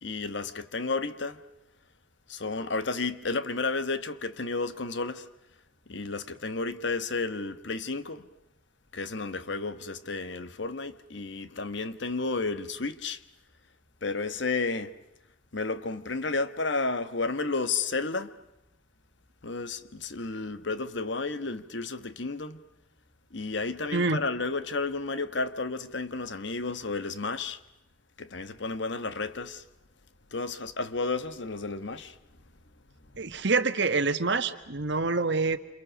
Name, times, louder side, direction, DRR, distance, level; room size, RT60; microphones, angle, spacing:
voice 1, 0.0-1.4 2.3-5.3 5.9-8.3 8.9-13.2 14.0-14.9 15.5-18.3 19.4-22.6 23.3-27.6 28.2-29.6 30.3-32.2, left 3 dB, 60° left, 1.2 m, -32 dB
voice 2, 33.2-35.6, right 4 dB, 60° right, 1.4 m, -26 dB
28.0 x 28.0 x 6.4 m
head